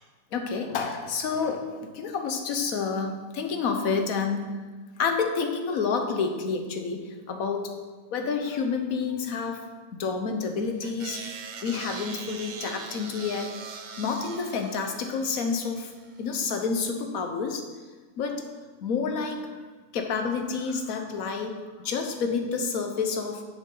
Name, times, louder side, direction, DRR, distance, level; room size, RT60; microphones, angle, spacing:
voice 1, 0.3-4.6 5.0-7.7 8.1-9.7 9.9-11.2 11.6-13.5 14.0-15.9 16.2-17.6 18.2-18.5 18.8-19.6 19.9-23.4, left 5 dB, 65° left, 4 dB, 1.3 m, -29 dB
sound 1, 10.8-16.2, right 5 dB, 75° right, 0.4 m, -41 dB
10.0 x 7.0 x 3.9 m, 1.4 s
omnidirectional pair, 1.6 m